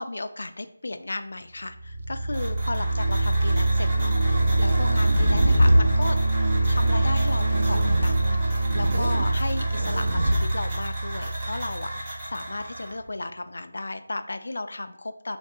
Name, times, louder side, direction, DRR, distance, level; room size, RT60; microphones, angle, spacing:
voice 1, 0.0-6.2 6.6-15.4, left 2 dB, 65° left, 8 dB, 0.3 m, -34 dB
sound 1, 1.7-12.4, right 2 dB, 80° right, 1.2 m, -24 dB
sound 2, 2.3-13.0, right 1 dB, 20° right, 0.8 m, -37 dB
sound 3, 2.3-3.1 4.0-5.9 7.4-8.1 8.6-9.3 9.7-10.4, equal, 45° right, 0.4 m, -25 dB
3.2 x 2.6 x 3.7 m, 0.79 s
figure-of-eight pair, 175°, 0 cm